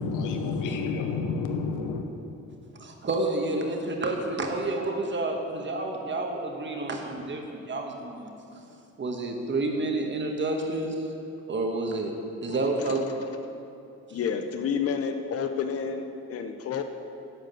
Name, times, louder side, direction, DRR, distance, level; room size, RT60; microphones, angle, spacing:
voice 1, 0.0-2.0, left 4 dB, 90° left, 5 dB, 0.8 m, -29 dB
voice 2, 2.8-8.3 9.0-11.1 11.5-12.1 12.4-13.0, right 2 dB, 40° right, 2 dB, 1.5 m, -29 dB
voice 3, 12.5-12.9 14.1-16.8, left 6 dB, 50° left, 7 dB, 0.7 m, -30 dB
11.5 x 5.1 x 7.6 m, 2.7 s
cardioid pair, 90°, 30 cm